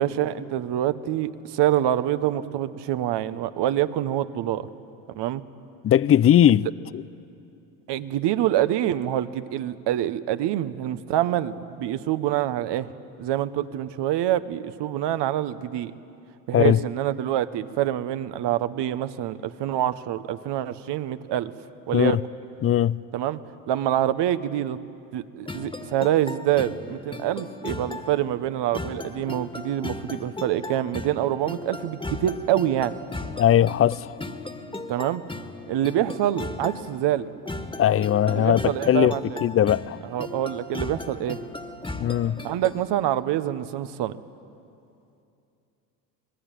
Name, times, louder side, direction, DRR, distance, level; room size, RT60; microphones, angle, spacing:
voice 1, 0.0-4.7 5.1-5.4 7.9-12.9 13.2-15.9 16.5-21.5 21.9-22.2 23.1-23.4 23.7-24.8 25.1-33.0 34.9-35.2 35.7-37.3 38.3-39.4 40.1-41.4 42.4-44.1, right 12 dB, 60° right, 1.3 m, -26 dB
voice 2, 5.8-6.7 6.9-7.0 16.5-16.8 21.9-22.2 22.6-23.0 33.4-34.1 37.8-39.1 39.4-40.0 42.0-42.4, left 11 dB, 30° left, 0.5 m, -19 dB
sound 1, 25.5-42.9, left 2 dB, 10° left, 1.9 m, -37 dB
26.0 x 20.5 x 9.1 m
hypercardioid pair, 70°, 47 cm